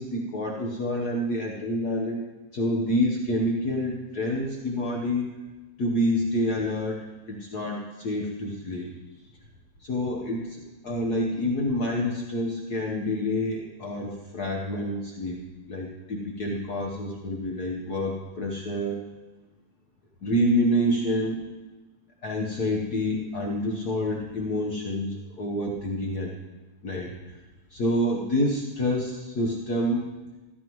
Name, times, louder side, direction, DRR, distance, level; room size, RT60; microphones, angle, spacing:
voice 1, 0.0-2.2 2.5-5.3 5.8-7.0 7.3-8.9 9.9-15.4 15.7-19.0 20.2-21.5 22.2-26.3 26.8-27.1 27.7-30.1, left 1 dB, 80° left, -1 dB, 0.8 m, -27 dB
15.0 x 14.0 x 3.1 m, 1.1 s
omnidirectional pair, 3.6 m